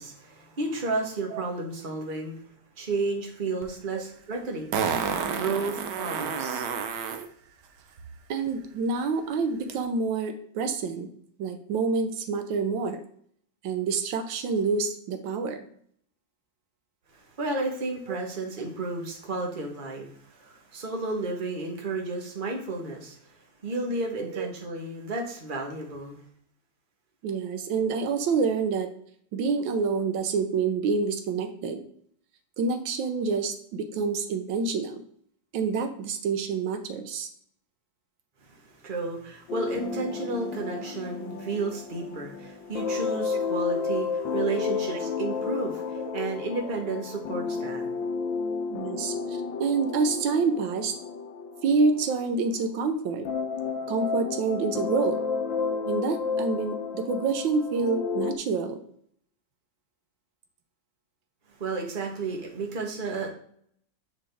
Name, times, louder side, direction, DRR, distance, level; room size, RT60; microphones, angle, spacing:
voice 1, 0.0-2.4 2.8-4.8 5.4-6.6 17.4-23.2 23.6-26.2 38.8-47.9 61.6-63.3, right 3 dB, 30° right, 1 dB, 1.1 m, -32 dB
Fart, 3.6-3.7 4.7-7.3 9.7-9.8, right 6 dB, 70° right, 1.2 m, -29 dB
voice 2, 8.3-11.1 11.4-13.0 13.6-15.7 24.2-24.5 27.2-28.9 29.3-31.8 32.6-35.0 35.5-37.3 46.0-46.1 48.7-50.9 51.6-53.3 53.9-55.2 55.9-58.8, right 4 dB, 90° right, 7 dB, 1.5 m, -27 dB
sound 1, 39.5-52.8 53.2-58.4, left 5 dB, 85° left, 1.4 m, -32 dB
7.6 x 4.1 x 3.4 m, 0.63 s
omnidirectional pair, 2.0 m